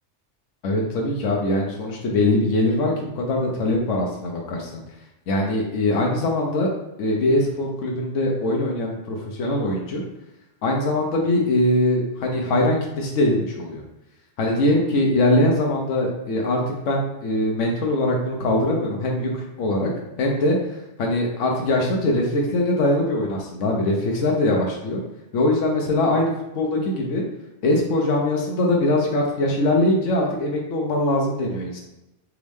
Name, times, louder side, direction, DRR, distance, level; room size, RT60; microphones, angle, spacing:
voice 1, 0.6-4.8 5.3-6.7 7.0-10.0 10.6-13.8 14.4-19.9 20.2-20.6 21.0-25.0 25.3-27.2 27.6-31.8, left 1 dB, 80° left, 0 dB, 1.1 m, -22 dB
3.6 x 3.1 x 3.4 m, 0.93 s
omnidirectional pair, 1.3 m